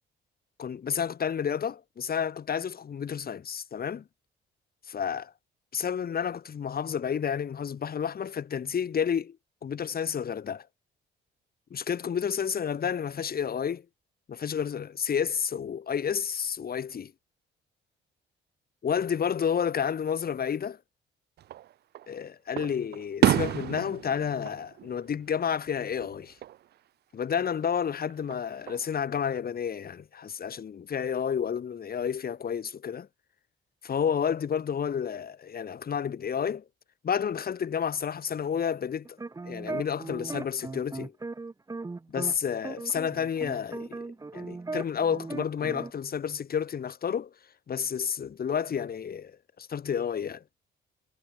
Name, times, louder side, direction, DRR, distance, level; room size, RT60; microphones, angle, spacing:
voice 1, 0.6-4.0 4.9-5.3 5.7-9.4 9.6-10.7 11.7-13.8 14.3-17.1 18.8-20.8 22.1-26.4 27.1-33.1 33.8-36.6 37.0-39.2 39.4-41.1 42.1-44.1 44.3-47.3 47.7-50.4, left 7 dB, 50° left, 2.9 m, -30 dB
Fireworks, 21.4-22.1 22.6-25.7 26.0-26.6 28.1-28.9, right 13 dB, 55° right, 0.4 m, -30 dB
sound 1, 39.0-42.3 42.6-45.9, right 3 dB, 15° right, 0.8 m, -37 dB
cardioid pair, 90°, 20 cm